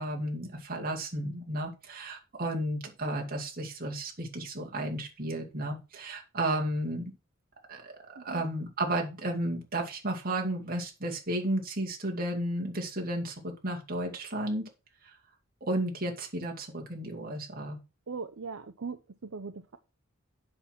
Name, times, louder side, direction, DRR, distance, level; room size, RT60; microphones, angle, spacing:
voice 1, 0.0-7.1 7.7-7.9 8.2-14.7 15.0-15.2 15.6-17.8, right 1 dB, 45° right, 1 dB, 2.4 m, -33 dB
voice 2, 8.2-8.5 18.1-19.8, right 5 dB, 70° right, 9 dB, 0.7 m, -40 dB
7.9 x 5.8 x 6.1 m, 0.30 s
head